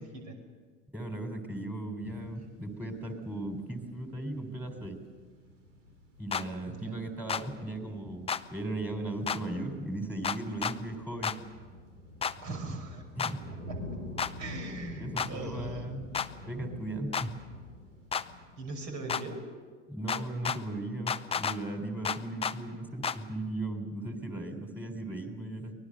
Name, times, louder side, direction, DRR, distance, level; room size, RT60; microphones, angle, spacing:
voice 1, 0.9-5.0 6.2-11.3 13.2-13.4 14.9-16.1 16.4-17.3 19.9-25.7, right 2 dB, 5° right, 4 dB, 3.9 m, -37 dB
sound 1, 2.0-18.7, left 1 dB, 75° right, 3.6 m, -47 dB
sound 2, 6.3-6.4 7.3-7.4 8.3-8.4 9.3-9.4 10.2-10.8 11.2-11.4 12.2-12.3 13.2-13.3 14.2-14.3 15.2-15.3 16.1-16.3 17.1-17.3 18.1-18.3 19.1-19.2 20.1-20.6 21.1-21.6 22.0-22.6 23.0-23.2, left 7 dB, 15° left, 0.7 m, -31 dB
voice 2, 6.7-7.0 12.4-13.0 13.7-13.8 14.4-15.9 18.6-19.4, right 2 dB, 45° right, 4 dB, 5.7 m, -40 dB
24.0 x 19.5 x 6.7 m, 1.5 s
figure-of-eight pair, 80°, 37 cm